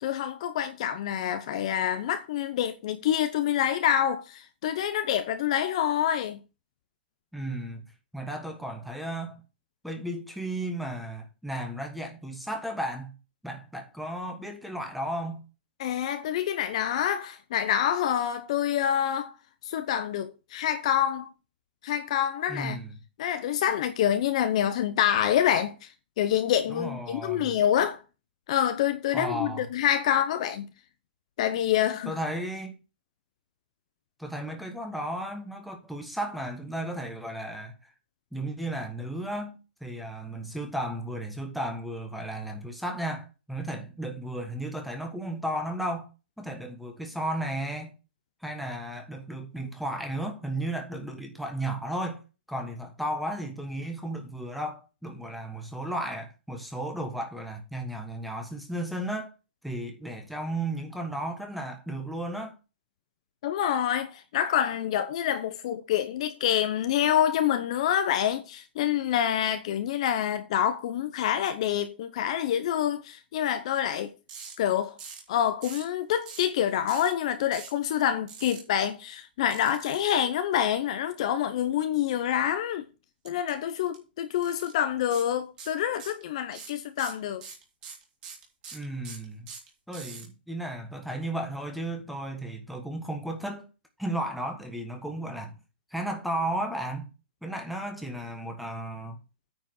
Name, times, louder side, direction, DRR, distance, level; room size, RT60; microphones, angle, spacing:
voice 1, 0.0-6.4 15.8-19.3 19.6-21.3 21.8-22.8 23.2-25.9 26.2-28.0 28.5-30.7 31.4-32.1 63.4-74.1 74.6-75.0 75.3-82.8 83.2-87.4, left 10 dB, 35° left, 0.8 m, -27 dB
voice 2, 7.3-7.9 8.1-9.4 9.8-13.1 13.4-15.4 22.5-23.0 26.7-27.5 29.1-29.6 32.0-32.8 34.2-37.9 38.3-46.1 46.4-47.9 48.4-52.2 52.5-59.3 59.6-62.6 88.7-89.5 89.9-93.7 94.0-95.6 95.9-97.1 97.4-99.2, right 1 dB, ahead, 1.3 m, -34 dB
sound 1, 74.3-74.5 75.0-75.3 75.6-75.9 76.3-76.5 76.9-77.1 77.5-77.8 78.3-78.6 79.5-80.1 83.2-83.5 83.8-84.0 84.4-84.7 85.1-85.3 85.6-86.2 86.5-90.2, right 6 dB, 20° right, 2.8 m, -43 dB
9.3 x 5.1 x 6.2 m
hypercardioid pair, 175°, 6 cm